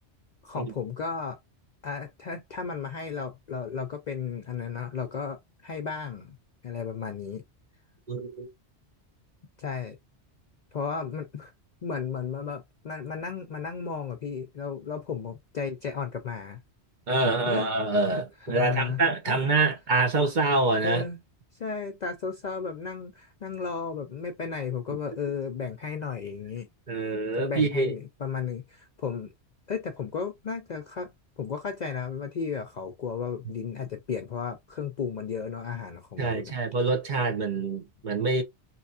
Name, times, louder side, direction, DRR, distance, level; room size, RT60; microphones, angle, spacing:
voice 1, 0.4-1.4 1.8-6.4 6.6-7.4 9.6-10.0 10.7-11.5 11.8-16.6 17.5-17.7 18.5-19.0 19.3-19.4 20.8-21.2 21.6-26.7 27.3-29.3 29.7-36.5, left 6 dB, 55° left, 0.5 m, -34 dB
voice 2, 8.1-8.5 17.1-21.0 26.9-27.9 36.2-38.4, right 3 dB, 45° right, 0.9 m, -26 dB
3.3 x 2.9 x 2.6 m
omnidirectional pair, 1.2 m